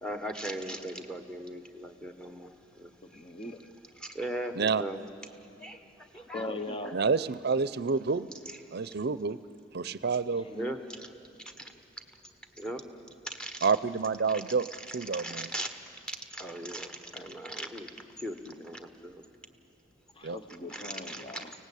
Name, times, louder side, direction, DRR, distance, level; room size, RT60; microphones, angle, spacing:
voice 1, 0.0-2.9 4.0-5.0 5.6-6.5 6.8-7.1 10.5-11.1 11.6-11.7 12.6-12.8 13.3-13.7 14.3-14.4 14.7-15.7 16.1-19.2 20.7-21.6, right 1 dB, 5° left, 6 dB, 1.3 m, -39 dB
voice 2, 3.0-3.6 6.1-6.9 10.3-10.8 20.2-21.5, left 2 dB, 30° left, 8 dB, 0.9 m, -40 dB
voice 3, 6.9-8.3 8.7-9.4 9.7-10.5 13.6-14.7 14.9-15.5 20.2-20.4, right 5 dB, 60° right, 16 dB, 0.6 m, -28 dB
24.0 x 18.0 x 8.4 m, 2.7 s
head